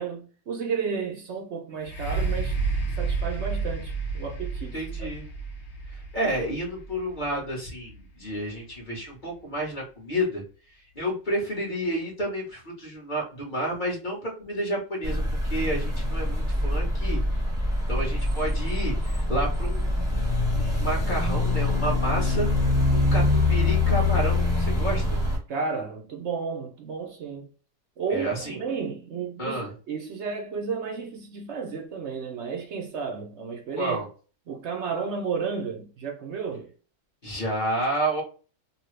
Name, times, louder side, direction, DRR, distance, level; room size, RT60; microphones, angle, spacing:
voice 1, 0.0-2.6 3.0-5.1 25.5-27.5 28.0-34.0 34.5-36.7, right 5 dB, 65° right, 1.0 m, -32 dB
sound 1, 1.8-9.5 10.2-10.3, right 4 dB, 65° left, 1.1 m, -31 dB
voice 2, 4.7-5.3 5.9-10.4 10.7-17.4 17.9-19.8 20.2-22.5 22.9-25.2 28.1-28.6 29.4-29.7 33.8-34.1 37.2-38.2, right 1 dB, 40° left, 1.5 m, -30 dB
sound 2, 15.0-25.4, left 2 dB, 5° right, 1.0 m, -24 dB
3.0 x 2.3 x 3.1 m
omnidirectional pair, 1.3 m